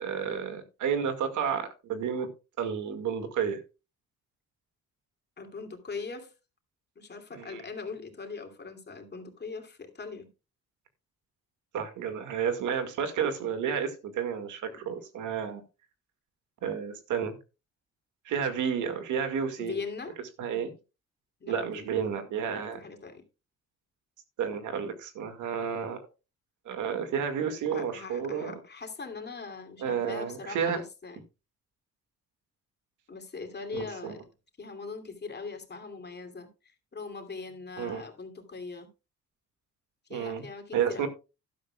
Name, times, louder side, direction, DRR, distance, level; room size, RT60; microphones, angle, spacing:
voice 1, 0.0-2.3 2.6-3.6 7.3-7.6 11.7-15.6 16.6-17.4 18.3-19.7 20.4-20.7 21.5-22.8 24.4-26.0 26.7-28.6 29.8-30.8 33.7-34.1 37.8-38.0 40.1-40.5 40.7-41.1, right 7 dB, 80° right, 2.1 m, -31 dB
voice 2, 5.4-6.3 7.0-10.3 14.7-14.8 19.6-20.2 21.4-23.2 27.7-31.2 33.1-34.2 34.6-38.9 40.1-41.1, left 4 dB, 35° left, 2.8 m, -41 dB
12.0 x 11.5 x 2.4 m
cardioid pair, 90°, 30 cm